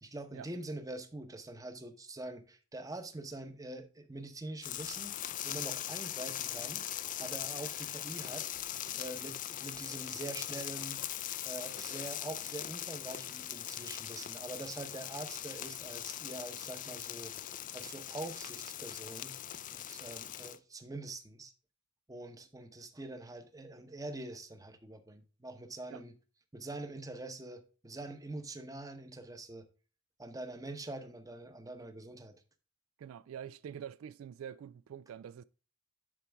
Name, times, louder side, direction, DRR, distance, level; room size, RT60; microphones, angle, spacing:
voice 1, 0.0-5.2 5.4-6.9 7.2-8.5 9.0-11.0 11.4-17.3 17.7-19.4 19.7-21.5 22.1-26.1 26.5-29.7 30.2-32.3, right 2 dB, 15° right, 0.9 m, -44 dB
sound 1, 4.6-20.6, left 12 dB, 40° left, 0.4 m, -41 dB
voice 2, 33.0-35.4, right 8 dB, 75° right, 0.3 m, -46 dB
11.0 x 4.5 x 3.4 m
head